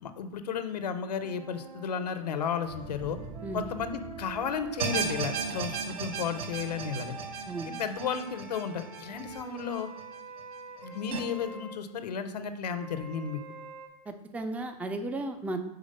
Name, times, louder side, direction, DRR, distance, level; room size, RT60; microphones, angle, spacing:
voice 1, 0.0-3.2 3.5-7.2 7.6-9.9 10.8-13.4, left 7 dB, 85° left, 10 dB, 0.6 m, -33 dB
sound 1, 1.2-5.7 6.4-11.8 12.6-13.9, right 4 dB, 80° right, 1.6 m, -46 dB
sound 2, 2.6-8.2, right 1 dB, 40° right, 2.2 m, -48 dB
sound 3, 4.8-10.0 10.4-10.5 11.1-11.2, right 5 dB, 65° right, 0.8 m, -35 dB
voice 2, 14.1-15.7, right 2 dB, 5° right, 7 dB, 0.4 m, -34 dB
4.9 x 3.9 x 5.3 m, 0.93 s
hypercardioid pair, 100°, 20 cm